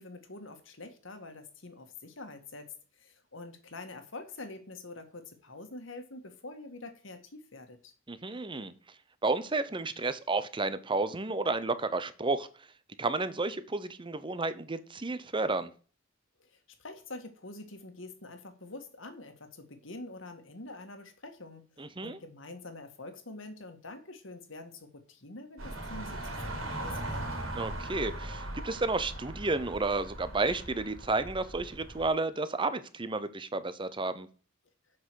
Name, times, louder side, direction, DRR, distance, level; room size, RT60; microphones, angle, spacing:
voice 1, 0.0-7.9 16.4-21.6 22.0-27.4, left 2 dB, 65° left, 1.9 m, -46 dB
voice 2, 8.1-8.7 9.2-12.5 13.0-15.7 21.8-22.2 27.5-34.3, right 3 dB, 25° right, 0.8 m, -31 dB
sound 1, 25.6-32.1, right 1 dB, 85° right, 3.3 m, -39 dB
7.9 x 6.0 x 6.3 m
head